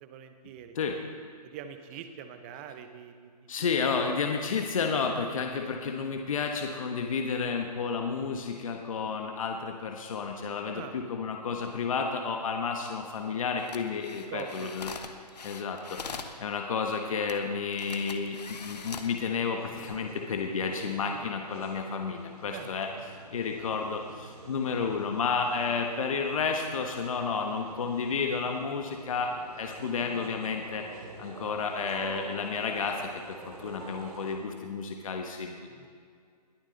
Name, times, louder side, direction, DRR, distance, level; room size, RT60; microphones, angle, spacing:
voice 1, 0.0-0.8 1.4-3.5 4.0-4.2 10.7-10.9 14.3-14.7 22.5-22.7 35.7-35.9, right 9 dB, 20° right, 9 dB, 0.7 m, -43 dB
voice 2, 3.5-14.9 15.4-22.9 23.3-30.9 31.2-35.7, left 5 dB, 55° left, 3 dB, 1.3 m, -31 dB
sound 1, 13.6-16.4 17.3-17.4 17.7-19.2 19.7-20.0, left 5 dB, 75° left, 1.3 m, -42 dB
sound 2, 18.7-34.4, right 3 dB, 60° right, 3.1 m, -47 dB
21.0 x 11.0 x 4.0 m, 2.2 s
hypercardioid pair, 160°, 21 cm